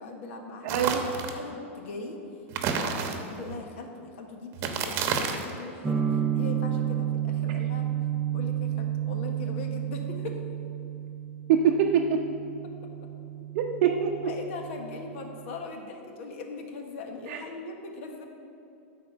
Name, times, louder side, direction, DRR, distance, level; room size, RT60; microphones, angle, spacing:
voice 1, 0.0-2.2 2.6-7.9 8.3-10.4 14.2-18.2, left 3 dB, 65° left, 3 dB, 1.3 m, -40 dB
sound 1, 0.7-1.4 2.5-3.5 4.5-5.6, right 6 dB, 40° right, 1.0 m, -30 dB
sound 2, 5.8-15.6, right 10 dB, 10° right, 0.4 m, -31 dB
voice 2, 11.5-12.2 13.6-14.1 17.3-17.4, right 7 dB, 60° right, 1 dB, 0.6 m, -23 dB
9.0 x 4.3 x 6.7 m, 2.7 s
hypercardioid pair, 125°, 7 cm